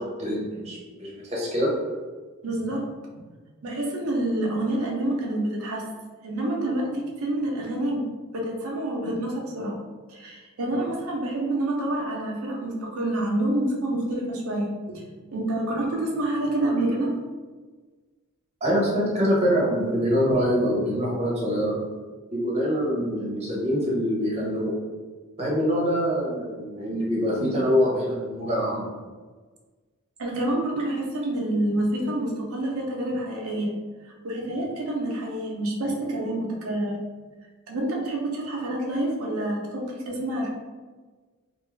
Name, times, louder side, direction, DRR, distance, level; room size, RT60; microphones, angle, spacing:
voice 1, 0.0-1.7 18.6-21.8 22.3-24.7 25.4-28.9, equal, 30° right, -5 dB, 0.8 m, -24 dB
voice 2, 2.4-2.9 3.6-5.8 6.2-8.0 8.3-9.8 10.1-15.0 15.3-17.2 30.2-33.7 34.0-36.9 37.7-40.5, right 1 dB, 85° right, -1 dB, 0.6 m, -27 dB
2.6 x 2.3 x 3.2 m, 1.4 s
head